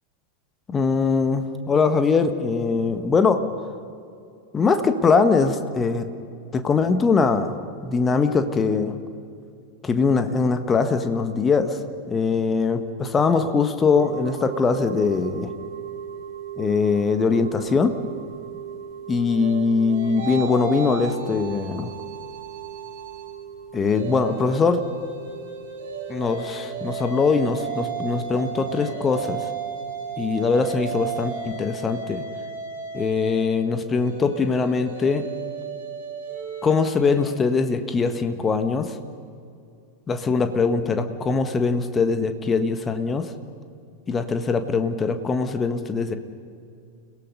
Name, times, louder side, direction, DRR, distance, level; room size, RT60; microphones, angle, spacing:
voice 1, 0.7-3.4 4.5-6.1 6.5-7.6 7.8-8.9 9.8-11.8 12.1-15.5 16.6-17.9 19.1-21.9 23.7-24.8 26.1-29.5 30.2-32.2 32.9-35.3 36.6-39.0 40.1-43.3 44.1-46.2, left 4 dB, 20° left, 8 dB, 1.5 m, -22 dB
sound 1, 13.9-31.6, right 9 dB, 30° right, 5.6 m, -39 dB
sound 2, 19.3-23.3 23.7-37.3, right 6 dB, 60° right, 6.2 m, -34 dB
30.0 x 18.0 x 5.4 m, 2.4 s
figure-of-eight pair, 90°, 0 cm